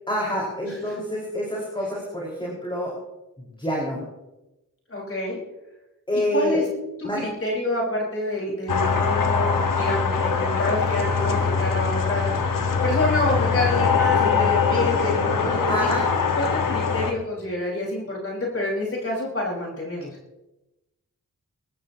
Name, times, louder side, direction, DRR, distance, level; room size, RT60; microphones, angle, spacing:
voice 1, 0.1-2.9 3.4-4.0 6.1-6.6 7.0-7.2 15.7-16.1, equal, 15° left, -4 dB, 5.1 m, -27 dB
voice 2, 4.9-5.4 6.1-6.6 7.0-12.3 12.8-15.9 16.3-20.1, left 2 dB, 40° left, -3 dB, 5.1 m, -27 dB
sound 1, 8.7-17.1, left 5 dB, 70° left, 1.6 m, -22 dB
23.0 x 13.0 x 3.0 m, 0.98 s
cardioid pair, 70°, 33 cm